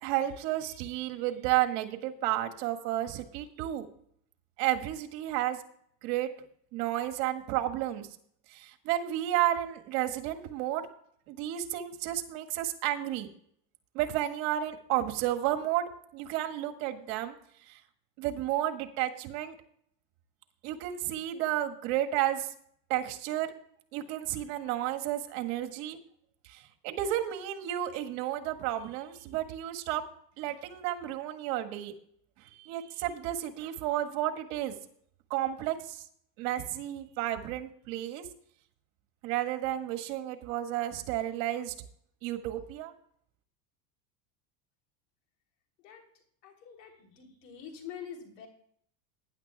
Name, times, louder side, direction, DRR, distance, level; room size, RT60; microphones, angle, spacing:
voice 1, 0.0-3.9 4.6-5.6 6.0-6.3 6.7-8.1 8.5-10.9 11.3-13.3 13.9-17.4 17.7-17.8 18.2-19.5 20.6-22.5 22.9-23.5 23.9-26.0 26.5-30.0 30.4-31.9 32.5-34.8 35.3-36.0 36.4-38.3 39.2-41.7 42.2-42.9, right 13 dB, 65° right, 5 dB, 1.9 m, -32 dB
voice 2, 46.4-48.5, left 8 dB, 85° left, 3 dB, 3.5 m, -45 dB
19.5 x 10.5 x 2.3 m, 0.65 s
supercardioid pair, 120°, 48 cm